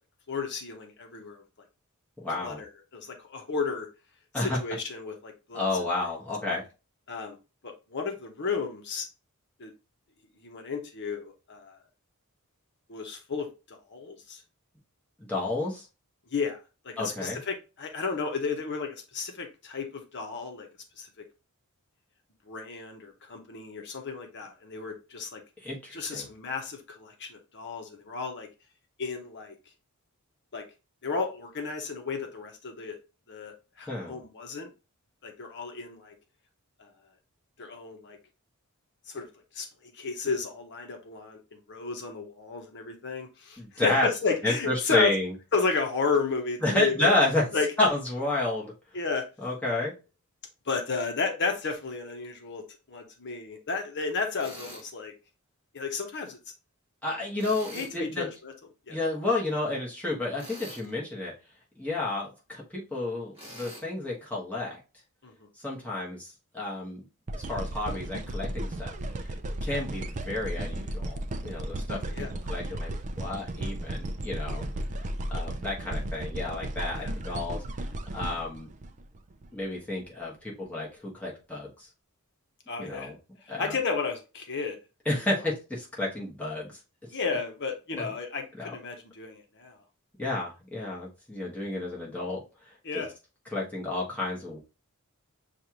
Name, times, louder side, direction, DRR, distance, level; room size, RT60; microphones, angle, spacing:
voice 1, 0.3-1.4 2.4-3.9 4.4-5.6 7.1-7.4 7.6-9.1 9.6-9.7 10.4-11.8 12.9-14.4 16.3-16.6 16.8-20.7 21.0-21.1 22.5-25.4 25.9-28.5 29.0-29.5 30.5-30.6 31.0-33.0 33.3-34.7 35.2-36.1 36.8-36.9 37.6-38.2 39.1-39.3 39.5-39.7 39.9-45.1 45.5-47.1 47.5-47.7 48.9-49.2 50.7-55.1 55.7-56.4 57.7-58.5 58.9-59.0 65.2-65.3 69.6-69.8 72.1-72.3 76.9-77.1 82.7-83.1 83.5-84.8 87.1-89.8 92.8-93.1, left 4 dB, 50° left, 3 dB, 1.0 m, -33 dB
voice 2, 2.2-2.6 4.3-4.6 5.5-6.6 15.2-15.9 17.0-17.4 25.6-26.3 33.9-34.2 43.6-44.1 44.4-45.3 46.6-47.4 47.8-48.7 49.4-49.9 57.0-58.3 58.9-61.3 61.8-64.8 65.6-67.0 67.3-68.9 69.3-69.4 69.6-72.0 72.4-74.7 75.3-77.6 78.1-78.7 79.5-81.9 82.8-83.2 83.5-83.8 85.0-86.8 88.0-88.1 88.5-88.7 90.2-92.4 92.9-93.0 93.5-94.6, left 2 dB, 5° left, -5 dB, 1.3 m, -30 dB
Tools, 54.4-54.9 57.4-58.0 60.4-60.9 63.3-63.8, equal, 10° right, 2.4 m, -44 dB
sound 1, 67.3-79.5 80.0-80.1, right 1 dB, 35° right, 0.4 m, -34 dB
6.5 x 2.5 x 2.9 m, 0.30 s
head